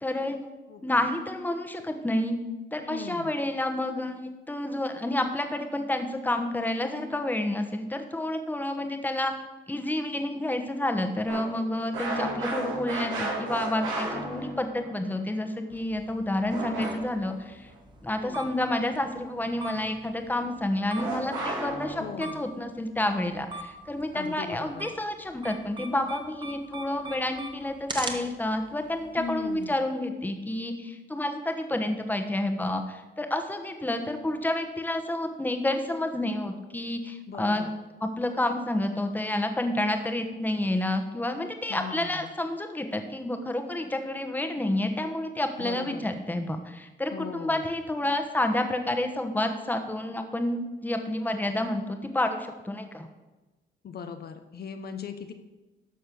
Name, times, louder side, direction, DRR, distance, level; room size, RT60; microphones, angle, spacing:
voice 1, 0.0-0.4 0.8-2.4 2.7-9.3 9.7-17.7 18.0-37.6 38.0-53.1, left 1 dB, 10° left, 5 dB, 1.2 m, -29 dB
voice 2, 2.8-3.3 18.2-18.5 22.0-22.4 24.1-24.9 29.2-29.8 37.3-37.7 41.7-42.3 45.6-46.0 47.1-47.7 53.8-55.3, left 7 dB, 55° left, 7 dB, 0.9 m, -39 dB
sound 1, 11.3-14.9 16.5-17.3 21.0-22.1, right 2 dB, 85° right, 3.5 m, -33 dB
sound 2, 15.7-29.6, right 2 dB, 25° right, 1.5 m, -43 dB
13.0 x 4.3 x 6.9 m, 1.1 s
cardioid pair, 90°, 20 cm